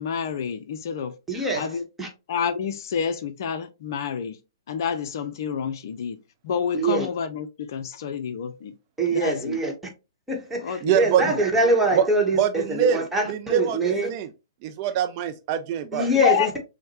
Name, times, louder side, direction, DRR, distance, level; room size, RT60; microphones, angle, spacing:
voice 1, 0.0-1.1 1.5-1.8 2.3-4.4 4.7-6.2 6.4-8.7 9.1-9.6 10.6-11.0 16.2-16.6, left 7 dB, 55° left, 0.5 m, -28 dB
voice 2, 1.3-2.1 6.7-7.1 9.0-9.7 10.3-14.1 15.9-16.6, right 1 dB, 5° right, 1.2 m, -24 dB
voice 3, 10.8-11.2 12.0-12.1 12.4-13.0 13.3-13.8 14.1-14.3 14.6-16.1, right 9 dB, 40° right, 0.4 m, -23 dB
6.3 x 2.2 x 2.9 m
figure-of-eight pair, 120°, 2 cm